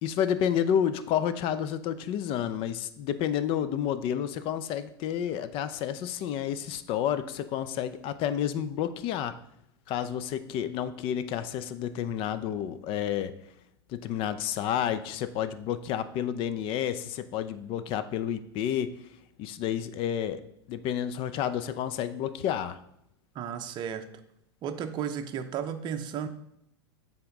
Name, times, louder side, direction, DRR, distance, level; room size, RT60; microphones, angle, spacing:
voice 1, 0.0-9.4 9.9-13.3 13.9-18.9 19.4-20.4 20.7-22.8, left 9 dB, 40° left, 12 dB, 0.5 m, -30 dB
voice 2, 23.3-24.1 24.6-26.3, right 8 dB, 35° right, 7 dB, 0.6 m, -33 dB
7.8 x 3.6 x 3.9 m, 0.77 s
hypercardioid pair, 105°, 13 cm